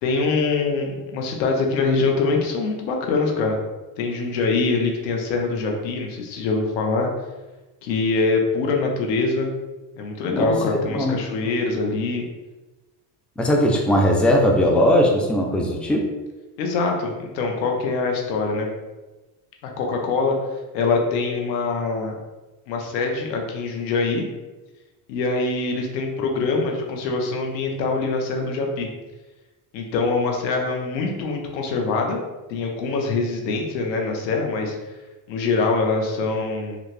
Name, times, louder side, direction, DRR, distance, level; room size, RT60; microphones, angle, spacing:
voice 1, 0.0-3.6 4.0-7.1 7.8-9.5 10.0-12.3 16.6-18.7 19.6-22.1 22.7-24.2 25.1-28.9 29.7-32.2 32.5-34.7 35.3-36.8, left 3 dB, 85° left, 1 dB, 0.8 m, -24 dB
voice 2, 10.3-11.2 13.4-16.1, equal, ahead, 0 dB, 0.5 m, -19 dB
3.3 x 2.5 x 3.3 m, 1.1 s
hypercardioid pair, 65°, 50 cm